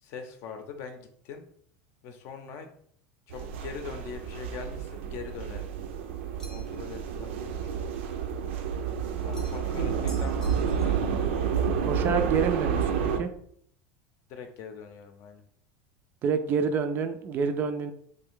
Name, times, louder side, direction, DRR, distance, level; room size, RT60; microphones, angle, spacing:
voice 1, 0.0-1.4 2.0-2.7 3.3-5.7 6.5-7.9 9.2-11.4 14.3-15.4, left 5 dB, 50° left, 6 dB, 0.6 m, -42 dB
sound 1, 3.3-13.2, right 7 dB, 90° right, 0.5 m, -30 dB
sound 2, 6.4-6.9 9.3-9.7 10.1-11.0, equal, 10° left, 0.7 m, -50 dB
voice 2, 11.8-13.3 16.2-17.9, right 5 dB, 35° right, 9 dB, 0.3 m, -28 dB
3.2 x 2.6 x 3.6 m, 0.63 s
supercardioid pair, 145°, 6 cm